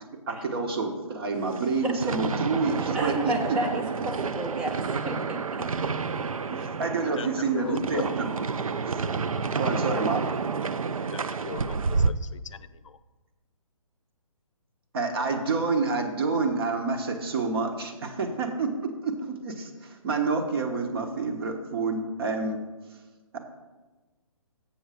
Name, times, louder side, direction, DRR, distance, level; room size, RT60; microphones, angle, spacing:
voice 1, 0.3-3.3 6.6-8.1 8.8-9.0 9.6-10.2 14.9-18.7 19.0-22.6 23.3-23.4, right 4 dB, 45° right, 4 dB, 1.2 m, -28 dB
sound 1, 1.3-12.1, right 5 dB, 75° right, 0.5 m, -30 dB
voice 2, 1.8-2.2 2.9-5.7 6.5-6.7, right 1 dB, 5° right, 3 dB, 0.3 m, -33 dB
voice 3, 7.2-8.0 9.3-9.4 11.0-13.0, left 6 dB, 60° left, 14 dB, 0.5 m, -38 dB
7.3 x 7.1 x 5.0 m, 1.2 s
figure-of-eight pair, 140°, 18 cm